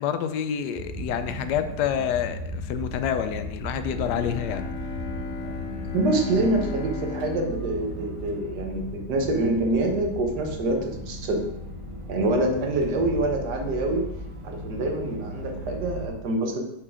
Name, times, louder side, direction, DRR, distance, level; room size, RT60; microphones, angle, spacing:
voice 1, 0.0-4.7, left 8 dB, 80° left, 9 dB, 1.2 m, -28 dB
sound 1, 0.7-16.1, equal, 30° right, 0.6 m, -36 dB
Bowed string instrument, 3.9-9.1, left 4 dB, 55° left, 1.1 m, -36 dB
voice 2, 5.9-11.5 12.1-14.1 14.4-16.6, right 2 dB, 75° right, 3 dB, 1.6 m, -26 dB
5.7 x 4.8 x 4.9 m, 0.82 s
omnidirectional pair, 1.8 m